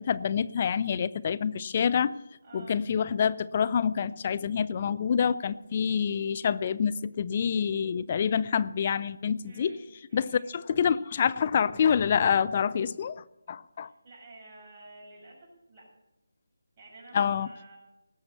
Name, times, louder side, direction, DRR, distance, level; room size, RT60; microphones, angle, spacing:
voice 1, 0.0-2.1 2.5-9.7 10.1-13.9 17.1-17.5, left 7 dB, 30° left, 17 dB, 0.5 m, -27 dB
voice 2, 2.4-2.8 9.4-9.8 10.1-10.6 13.8-15.9 16.8-17.8, right 2 dB, 25° right, -4 dB, 6.5 m, -51 dB
18.5 x 7.2 x 6.7 m, 0.91 s
figure-of-eight pair, 165°, 0 cm